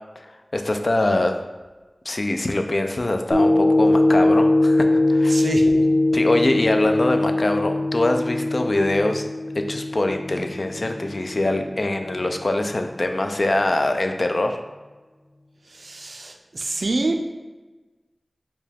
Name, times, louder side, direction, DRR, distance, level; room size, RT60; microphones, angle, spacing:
voice 1, 0.2-1.4 2.1-5.5 6.1-9.3 9.7-14.6, left 2 dB, 65° left, 5 dB, 0.3 m, -23 dB
sound 1, 3.3-11.7 12.2-12.3, left 2 dB, 10° left, 0.8 m, -21 dB
voice 2, 5.3-5.9 15.7-17.3, right 2 dB, 85° right, 5 dB, 0.4 m, -26 dB
4.6 x 2.3 x 3.4 m, 1.2 s
wide cardioid pair, 55°, 0 cm